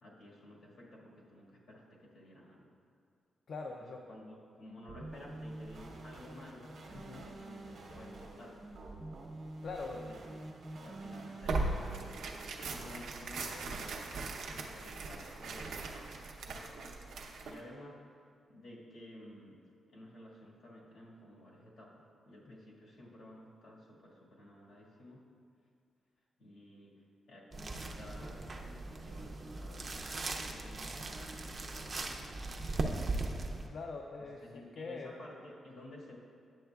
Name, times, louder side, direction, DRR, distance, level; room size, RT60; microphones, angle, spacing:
voice 1, 0.0-2.7 4.1-8.5 9.9-10.4 10.8-14.0 14.5-15.9 16.5-18.0 18.5-19.6 19.9-25.2 26.4-26.9 27.3-33.0 34.2-36.2, left 1 dB, 80° left, -5 dB, 1.6 m, -53 dB
voice 2, 3.5-4.0 6.9-7.3 9.6-10.2 33.7-35.2, left 3 dB, 60° left, 1 dB, 0.4 m, -43 dB
sound 1, 4.9-12.9, right 2 dB, 55° right, 0.9 m, -48 dB
Tearing, 11.4-17.6, right 3 dB, 90° right, 0.6 m, -39 dB
sound 2, 27.5-33.7, right 2 dB, 30° right, 0.5 m, -39 dB
9.0 x 7.0 x 2.3 m, 2.3 s
wide cardioid pair, 140°, 0 cm